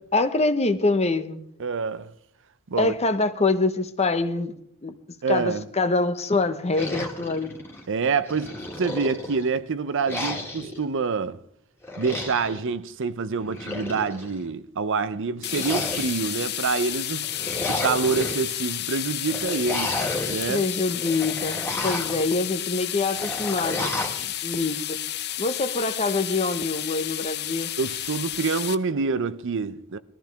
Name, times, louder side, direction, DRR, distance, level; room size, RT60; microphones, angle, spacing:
voice 1, 0.1-1.4 2.8-4.5 4.8-4.9 5.3-7.5 20.5-23.9 24.2-25.0 25.4-27.7, left 3 dB, 30° left, 1.0 m, -25 dB
voice 2, 1.6-2.1 2.7-2.9 5.2-5.7 7.9-11.4 12.0-20.0 20.3-20.7 27.8-30.0, right 4 dB, 55° right, 0.6 m, -27 dB
sound 1, 6.7-7.9 8.3-9.5 10.1-10.8 11.8-12.6 13.4-14.4 15.4-16.4 17.2-18.4 19.3-20.5 20.9-22.3 23.1-24.3, left 1 dB, 10° left, 2.0 m, -32 dB
sound 2, 15.4-28.7, left 13 dB, 50° left, 0.7 m, -31 dB
20.5 x 13.5 x 3.5 m
head